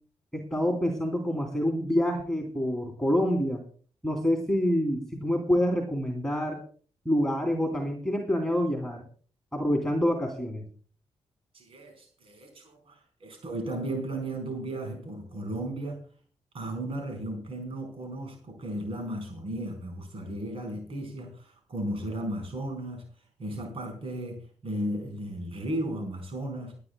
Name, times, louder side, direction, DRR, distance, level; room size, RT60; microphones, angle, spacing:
voice 1, 0.3-3.6 4.0-6.6 7.0-9.0 9.5-10.7, equal, 5° left, 2 dB, 2.8 m, -27 dB
voice 2, 11.5-16.0 16.5-23.0 23.4-26.8, right 1 dB, 60° right, 3 dB, 4.5 m, -35 dB
27.5 x 10.0 x 2.2 m, 0.42 s
cardioid pair, 90°, 11 cm